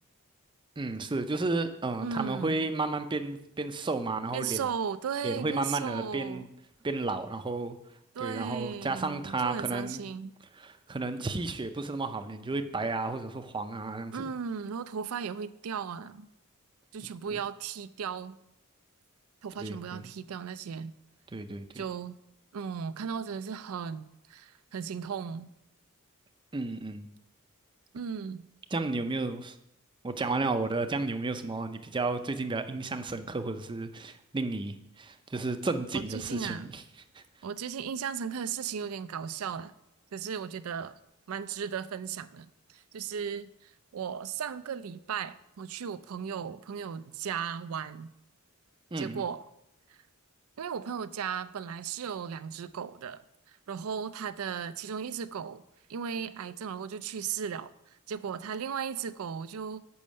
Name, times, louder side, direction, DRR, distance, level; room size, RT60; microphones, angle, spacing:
voice 1, 0.8-4.6 5.2-6.4 6.8-7.8 8.2-10.0 10.6-14.3 17.0-17.4 19.6-20.1 21.3-21.8 26.5-27.1 28.7-29.6 30.0-36.8 37.1-37.2 48.9-49.2, right 3 dB, 20° right, 0.5 m, -32 dB
voice 2, 2.0-2.7 4.3-6.4 8.2-10.3 14.1-16.3 16.9-18.4 19.4-20.9 21.7-22.2 22.5-25.5 27.9-28.5 35.9-36.7 37.4-39.7 40.1-41.0 41.3-48.1 49.0-49.4 49.9-50.0 50.6-55.6 55.9-57.7 58.1-59.8, right 7 dB, 75° right, 0.4 m, -36 dB
7.0 x 5.4 x 6.3 m
head